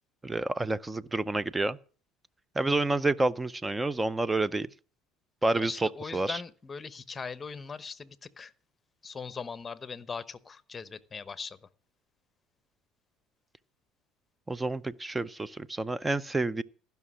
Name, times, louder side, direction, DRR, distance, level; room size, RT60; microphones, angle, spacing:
voice 1, 0.2-1.8 2.5-4.7 5.4-6.4 14.5-16.6, right 2 dB, 15° right, 0.6 m, -29 dB
voice 2, 5.6-8.5 9.0-11.6, left 5 dB, 25° left, 0.9 m, -40 dB
15.0 x 5.9 x 7.5 m
supercardioid pair, 90°, 0 cm